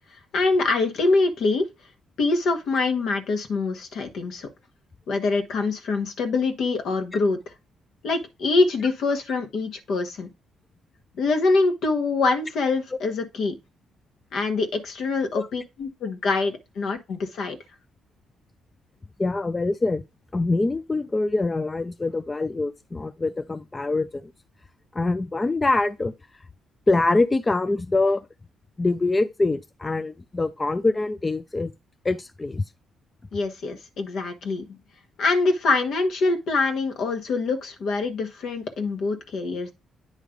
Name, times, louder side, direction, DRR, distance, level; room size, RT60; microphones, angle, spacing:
voice 1, 0.3-1.7 2.2-4.5 5.1-7.4 8.0-10.3 11.2-13.5 14.3-17.6 33.3-34.8 35.2-39.7, left 3 dB, 70° left, 1.2 m, -24 dB
voice 2, 19.2-20.0 20.3-24.3 24.9-26.1 26.9-28.2 28.8-31.7 32.0-32.6, left 2 dB, 20° left, 0.4 m, -24 dB
9.2 x 3.2 x 5.1 m
cardioid pair, 90°, 0 cm